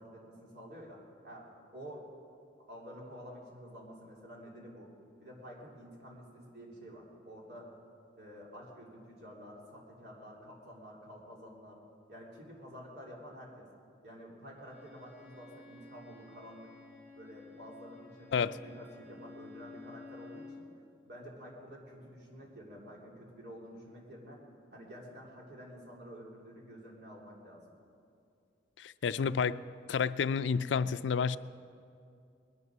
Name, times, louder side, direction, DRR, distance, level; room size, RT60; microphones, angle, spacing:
voice 1, 0.0-1.5 1.7-2.1 2.6-4.9 5.2-7.7 8.2-11.8 12.1-13.7 14.0-16.7 17.1-18.3 18.6-20.7 21.0-24.4 24.7-27.8, equal, 65° right, -3 dB, 3.2 m, -50 dB
Bowed string instrument, 14.6-20.7, left 3 dB, 10° right, 3.9 m, -53 dB
voice 2, 28.8-29.6 29.9-31.4, left 6 dB, 90° left, 15 dB, 0.4 m, -30 dB
20.0 x 11.0 x 6.1 m, 2.5 s
head